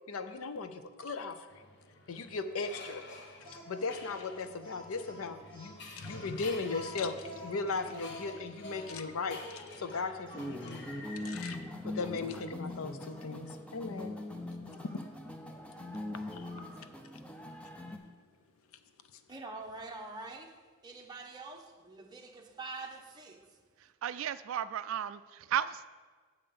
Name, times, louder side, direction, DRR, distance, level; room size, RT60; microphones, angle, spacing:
voice 1, 0.1-1.4 2.1-3.0 3.7-10.9 11.2-14.1 16.3-16.5, left 4 dB, 80° left, 10 dB, 0.6 m, -37 dB
sound 1, 1.5-11.6, left 2 dB, 50° left, 0.9 m, -50 dB
Speech, 3.4-11.0 11.6-11.8 12.3-13.2 14.6-15.0 16.1-16.9, equal, 25° left, 1.7 m, -49 dB
sound 2, 10.3-18.0, left 1 dB, 5° left, 0.6 m, -42 dB
voice 2, 19.3-20.5 20.8-23.4, right 3 dB, 20° right, 1 dB, 0.9 m, -45 dB
voice 3, 23.8-25.9, right 9 dB, 70° right, 14 dB, 0.3 m, -34 dB
7.9 x 5.5 x 6.9 m, 1.5 s
head